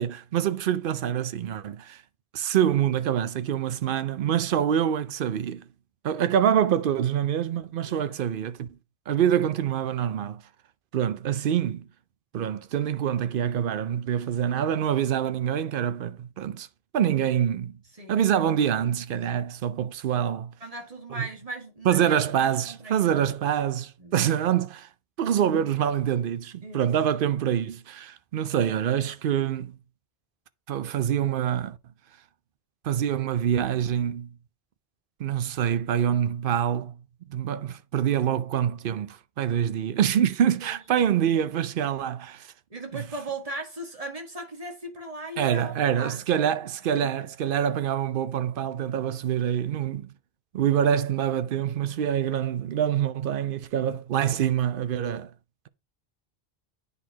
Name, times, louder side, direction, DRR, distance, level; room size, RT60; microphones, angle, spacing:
voice 1, 0.0-2.0 2.3-5.6 6.0-8.7 9.1-10.4 10.9-11.9 12.3-16.7 16.9-17.8 18.1-20.5 21.1-21.2 21.8-24.9 25.2-29.8 30.7-31.8 32.8-34.3 35.2-36.9 37.3-42.5 42.9-43.0 45.4-50.1 50.5-55.3, right 9 dB, 65° right, 0.7 m, -25 dB
voice 2, 7.8-8.2 17.9-18.2 20.6-23.2 24.0-24.3 26.6-26.9 40.6-40.8 41.4-41.5 42.7-46.5 46.9-47.3, right 2 dB, 35° right, 1.7 m, -39 dB
9.7 x 4.1 x 2.8 m
omnidirectional pair, 1.0 m